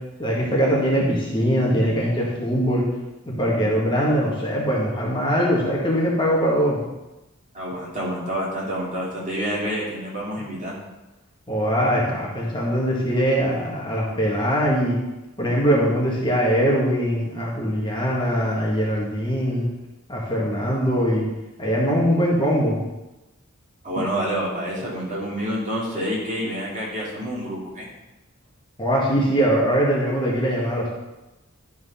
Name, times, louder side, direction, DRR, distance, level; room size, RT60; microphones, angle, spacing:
voice 1, 0.2-2.8 3.2-6.8 11.5-15.0 15.4-19.7 20.1-21.2 21.6-22.8 28.8-30.9, equal, 25° left, -4 dB, 1.9 m, -22 dB
voice 2, 7.5-10.7 23.8-27.9, equal, 35° right, -5 dB, 3.1 m, -28 dB
11.5 x 4.7 x 5.8 m, 1.0 s
head